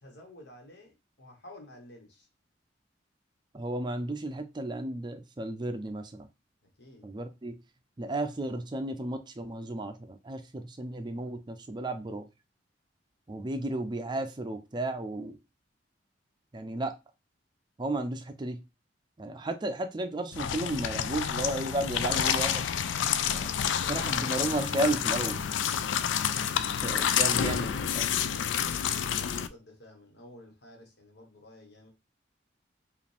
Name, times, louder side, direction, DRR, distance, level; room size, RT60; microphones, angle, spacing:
voice 1, 0.0-2.3 6.6-7.1 21.8-22.5 23.4-25.3 26.6-31.9, left 1 dB, 65° left, 1 dB, 1.5 m, -51 dB
voice 2, 3.5-6.3 7.0-7.6 8.0-12.3 13.3-15.4 16.5-17.0 17.8-18.6 19.2-22.5 23.3-23.5 23.9-25.4 26.8-28.1, right 1 dB, 25° right, 7 dB, 0.4 m, -33 dB
sound 1, 20.3-29.5, left 8 dB, 85° left, 0.4 m, -29 dB
4.9 x 2.5 x 3.4 m, 0.25 s
head